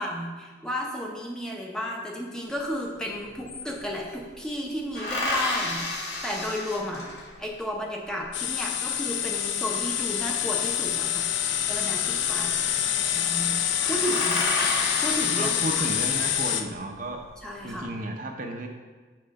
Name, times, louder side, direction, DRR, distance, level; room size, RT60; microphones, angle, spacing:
voice 1, 0.0-7.0 7.4-11.3 11.7-12.6 13.1-15.9 17.4-17.9, equal, 5° left, -1 dB, 0.7 m, -33 dB
sound 1, 2.8-2.9 3.1-4.2 4.9-7.5 10.1-11.1 12.3-12.7 13.0-13.1 13.4-13.5 13.8-16.3 16.9-17.6, left 2 dB, 60° left, 1.2 m, -31 dB
sound 2, 8.3-16.7, left 10 dB, 75° left, 0.4 m, -26 dB
voice 2, 15.4-17.2 17.6-18.7, right 2 dB, 45° right, 2 dB, 0.7 m, -33 dB
7.7 x 3.8 x 5.2 m, 1.4 s
head